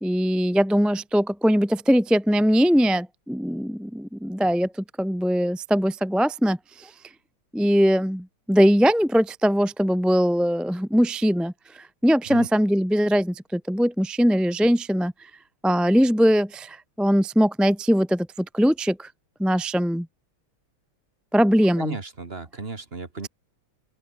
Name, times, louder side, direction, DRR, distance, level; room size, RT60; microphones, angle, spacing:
voice 1, 0.0-6.9 7.5-15.1 15.6-19.1 19.4-20.1 21.3-22.0, equal, ahead, 0.8 m, -21 dB
voice 2, 21.8-23.3, right 3 dB, 30° right, 2.0 m, -35 dB
open air
omnidirectional pair, 2.4 m